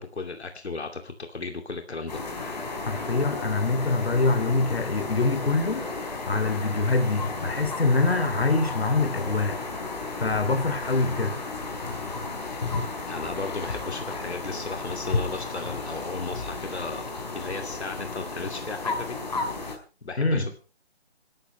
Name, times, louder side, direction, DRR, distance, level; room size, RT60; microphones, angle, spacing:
voice 1, 0.0-2.2 12.9-17.0 17.3-19.2 20.0-20.5, left 3 dB, 90° left, 2.6 m, -35 dB
sound 1, 2.1-19.8, left 3 dB, 40° left, 4.6 m, -33 dB
voice 2, 2.8-5.9 6.3-9.6 10.2-11.4 20.2-20.5, left 3 dB, 70° left, 2.9 m, -24 dB
26.5 x 13.0 x 3.2 m
hypercardioid pair, 175°, 32 cm